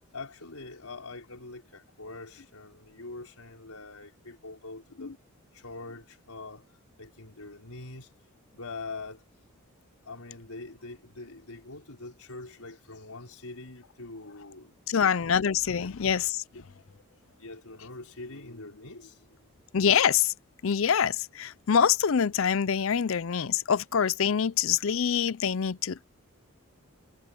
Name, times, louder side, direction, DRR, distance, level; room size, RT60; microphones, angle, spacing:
voice 1, 0.1-5.1 5.5-8.1 8.5-9.2 10.0-15.1 15.8-15.9 16.5-16.7 17.4-19.4, left 3 dB, 85° left, 4.6 m, -44 dB
voice 2, 14.9-16.4 19.7-20.3 20.6-26.0, left 7 dB, 60° left, 0.5 m, -25 dB
head